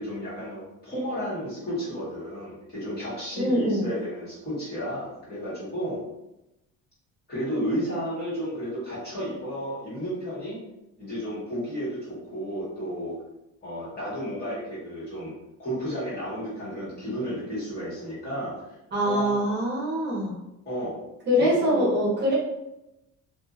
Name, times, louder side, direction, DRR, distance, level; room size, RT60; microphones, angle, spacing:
voice 1, 0.0-6.0 7.3-10.6 11.0-13.1 13.6-15.3 15.6-18.8 19.0-19.3 20.6-21.0 21.4-21.9, equal, 30° left, -9 dB, 1.5 m, -32 dB
voice 2, 3.3-3.8 18.9-20.4 21.3-22.3, equal, 35° right, -7 dB, 0.9 m, -24 dB
2.6 x 2.4 x 2.6 m, 0.91 s
cardioid pair, 170°, 32 cm